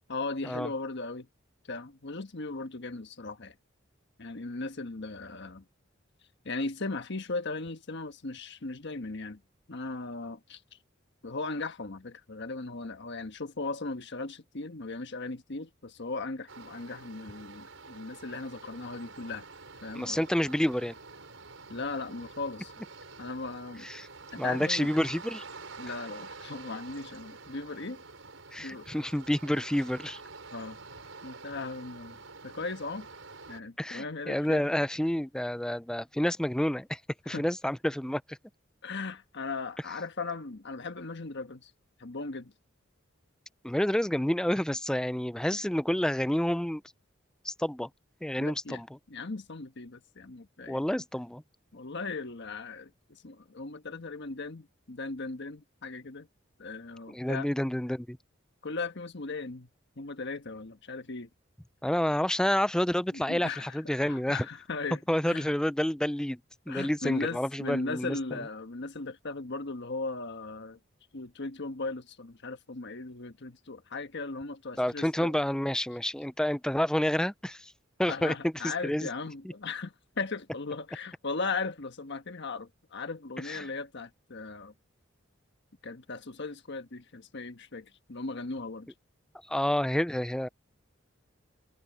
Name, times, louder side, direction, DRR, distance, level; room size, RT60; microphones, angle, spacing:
voice 1, 0.1-1.3 1.7-3.6 4.2-5.6 6.4-9.4 9.7-10.8 11.2-19.4 19.8-20.2 21.7-22.7 23.2-23.9 24.3-24.9 25.8-28.0 28.6-28.9 30.5-30.8 31.2-32.2 32.4-33.1 33.5-34.6 37.3-37.5 38.8-41.7 42.0-42.5 48.4-48.8 49.1-50.8 51.7-56.3 56.6-57.5 58.6-59.7 60.0-61.3 63.1-65.0 65.3-65.5 66.7-70.8 71.1-75.3 78.1-84.7 85.8-88.9, left 3 dB, 60° left, 1.4 m, -37 dB
sound 1, 16.5-33.6, right 4 dB, 75° right, 6.2 m, -47 dB
voice 2, 19.9-20.9 23.8-24.1 24.4-25.4 28.5-30.2 33.8-37.0 37.3-38.4 43.6-46.8 47.4-47.9 48.2-48.9 50.7-51.4 57.1-58.2 61.8-64.5 65.1-66.4 66.7-68.4 74.8-77.7 78.0-78.3 78.6-79.1 83.4-83.7 89.5-90.5, left 1 dB, 5° left, 0.4 m, -29 dB
head